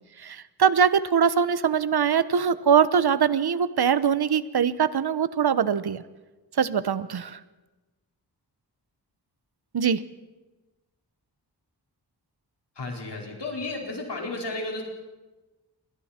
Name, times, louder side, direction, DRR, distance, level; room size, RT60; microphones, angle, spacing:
voice 1, 0.2-6.0 6.6-7.4 9.7-10.0, right 7 dB, 65° right, 15 dB, 0.9 m, -22 dB
voice 2, 12.7-14.8, left 2 dB, 80° left, 0 dB, 4.8 m, -33 dB
29.0 x 22.0 x 4.4 m, 1.2 s
wide cardioid pair, 90°, 41 cm